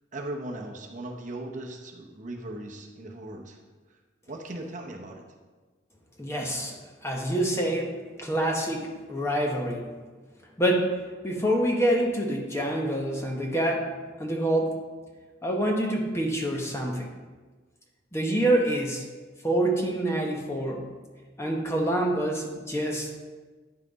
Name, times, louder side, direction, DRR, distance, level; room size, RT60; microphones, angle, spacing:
voice 1, 0.1-3.6 4.3-5.2, right 1 dB, 40° right, 1 dB, 0.8 m, -38 dB
voice 2, 6.2-6.8 7.0-7.9 8.2-9.9 10.6-10.9 11.2-13.9 14.2-14.8 15.4-17.1 18.1-19.0 19.4-20.8 21.4-23.1, right 1 dB, 15° left, 0 dB, 0.9 m, -26 dB
9.5 x 5.7 x 4.0 m, 1.4 s
head